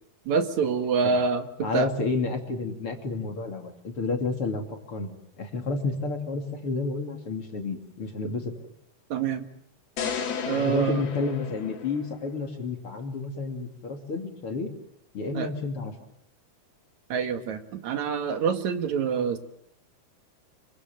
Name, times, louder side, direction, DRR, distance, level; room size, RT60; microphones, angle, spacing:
voice 1, 0.3-1.9 9.1-9.5 10.5-11.0 15.3-15.5 17.1-19.4, right 5 dB, 55° right, 8 dB, 2.7 m, -26 dB
voice 2, 1.6-8.5 10.5-14.7 15.1-15.9, left 3 dB, 40° left, 4 dB, 3.2 m, -30 dB
sound 1, 10.0-12.3, left 7 dB, 75° left, 4.8 m, -33 dB
27.0 x 24.5 x 7.8 m, 0.73 s
omnidirectional pair, 4.5 m